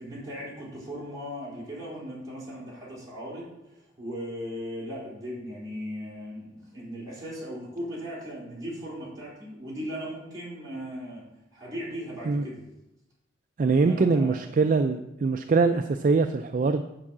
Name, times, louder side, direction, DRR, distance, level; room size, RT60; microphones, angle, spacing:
voice 1, 0.0-11.3 11.5-12.6 13.6-14.4, equal, 20° right, -6 dB, 3.5 m, -38 dB
voice 2, 13.6-16.8, right 4 dB, 40° right, 8 dB, 0.3 m, -23 dB
8.7 x 4.7 x 7.2 m, 0.91 s
head